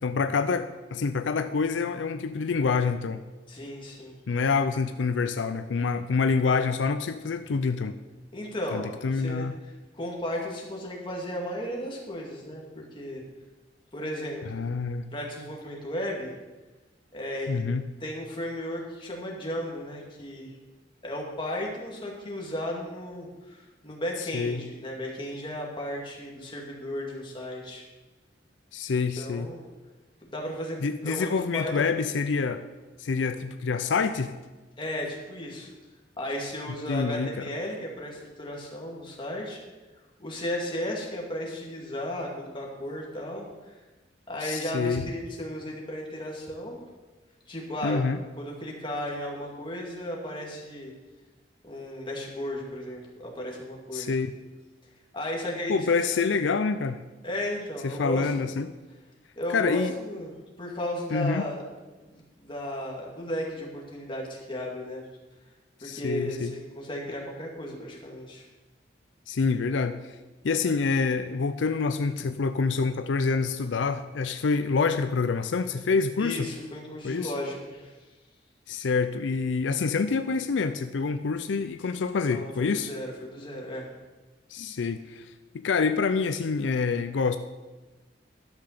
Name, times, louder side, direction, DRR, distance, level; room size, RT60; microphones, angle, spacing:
voice 1, 0.0-3.2 4.3-8.0 8.7-9.5 14.5-15.1 17.5-17.8 24.3-24.6 28.7-29.5 30.8-32.6 33.0-34.4 36.9-37.5 44.4-45.0 47.8-48.2 53.9-54.3 55.7-57.0 57.8-58.7 59.5-59.9 61.1-61.5 65.8-66.5 69.3-70.0 70.4-76.5 77.0-77.3 78.7-82.9 84.5-85.3 85.5-87.4, left 4 dB, 85° left, 9 dB, 0.5 m, -27 dB
voice 2, 3.5-4.2 8.3-13.2 13.9-14.6 15.1-16.3 17.1-17.6 18.0-20.5 21.0-27.8 28.9-29.6 30.3-30.8 31.0-32.0 34.8-35.7 36.2-39.6 40.2-43.8 44.3-46.8 47.5-48.0 48.4-50.9 51.6-54.2 55.1-55.8 56.1-56.3 57.2-58.5 59.4-60.3 60.6-61.6 62.0-65.0 65.8-68.5 76.2-77.9 82.2-83.9, left 1 dB, 25° left, -1 dB, 2.2 m, -35 dB
12.0 x 5.8 x 6.6 m, 1.2 s
head